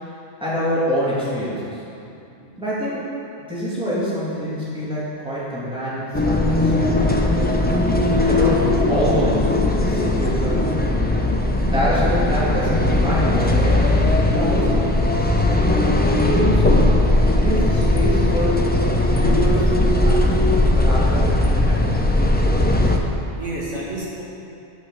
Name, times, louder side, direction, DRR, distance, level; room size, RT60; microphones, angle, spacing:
voice 1, 0.4-1.8 2.6-3.1 3.5-7.1 8.3-10.7 11.5-14.8 15.5-16.9 17.2-18.6 19.0-21.9, equal, 5° right, -10 dB, 2.5 m, -26 dB
voice 2, 1.9-2.6 23.4-24.2, right 1 dB, 85° right, -6 dB, 2.0 m, -32 dB
sound 1, 6.1-23.0, left 1 dB, 15° left, 0.4 m, -18 dB
8.1 x 6.4 x 6.3 m, 2.6 s
omnidirectional pair, 1.2 m